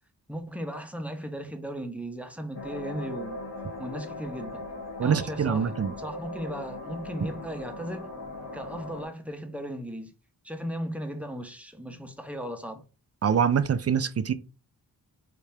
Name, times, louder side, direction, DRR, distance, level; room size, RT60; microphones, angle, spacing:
voice 1, 0.3-3.4 3.8-4.6 5.0-8.1 8.5-10.1 10.4-12.8, equal, 5° right, 0.8 m, -36 dB
sound 1, 2.5-9.1, left 2 dB, 80° left, 1.0 m, -39 dB
voice 2, 5.0-5.9 13.2-14.3, right 7 dB, 40° right, 0.4 m, -24 dB
3.3 x 2.8 x 3.3 m
cardioid pair, 45°, 41 cm